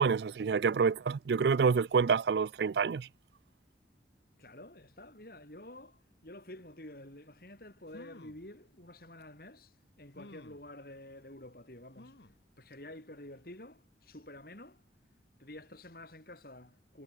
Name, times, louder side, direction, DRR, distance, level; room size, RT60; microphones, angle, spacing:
voice 1, 0.0-3.1, right 5 dB, 65° right, 0.4 m, -27 dB
voice 2, 4.4-12.2 12.6-14.8 15.4-17.0, left 1 dB, 55° left, 4.2 m, -50 dB
sound 1, 7.5-7.6 7.9-8.5 9.2-9.3 10.1-10.7 12.0-12.4 12.9-13.0 13.3-13.4, left 2 dB, 70° left, 1.3 m, -53 dB
head